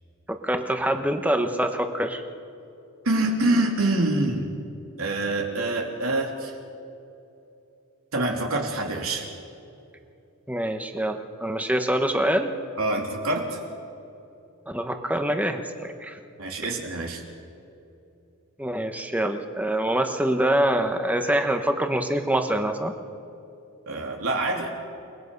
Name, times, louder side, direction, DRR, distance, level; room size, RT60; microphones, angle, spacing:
voice 1, 0.3-2.2 10.5-12.5 14.7-16.2 18.6-22.9, right 1 dB, 5° right, 6 dB, 1.3 m, -25 dB
voice 2, 3.0-4.5 5.0-6.5 8.1-9.3 12.8-13.6 16.4-17.2 23.9-24.7, right 2 dB, 80° right, 0 dB, 3.3 m, -25 dB
29.0 x 19.5 x 5.4 m, 2.8 s
head